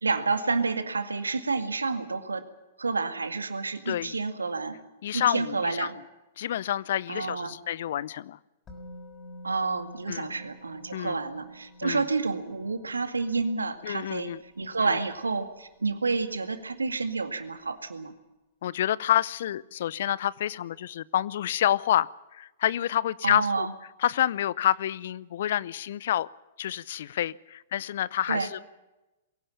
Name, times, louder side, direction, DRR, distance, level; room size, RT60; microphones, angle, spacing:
voice 1, 0.0-2.4 2.8-4.8 5.1-5.9 7.1-7.5 9.4-14.3 14.6-18.1 23.2-23.7 28.3-28.5, right 4 dB, 80° right, 9 dB, 2.0 m, -29 dB
voice 2, 3.9-4.2 5.0-5.9 6.4-8.4 10.1-10.3 10.9-11.2 11.8-12.1 13.8-14.4 14.8-15.0 18.6-23.7 24.0-26.3 26.6-28.7, left 11 dB, 60° left, 21 dB, 0.7 m, -28 dB
Musical instrument, 8.7-16.6 16.8-17.0, left 1 dB, 25° left, 6.0 m, -51 dB
23.0 x 16.5 x 8.6 m, 1.0 s
figure-of-eight pair, 105°, 0 cm